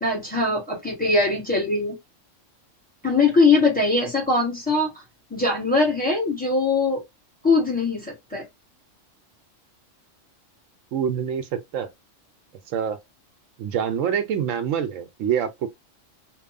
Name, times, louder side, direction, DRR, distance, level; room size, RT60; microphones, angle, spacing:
voice 1, 0.0-2.0 3.0-4.9 5.3-7.0 7.4-8.4, left 3 dB, 10° left, 1.0 m, -21 dB
voice 2, 10.9-11.9 12.7-13.0 13.6-15.7, right 8 dB, 80° right, 0.9 m, -25 dB
2.8 x 2.3 x 2.4 m
omnidirectional pair, 1.3 m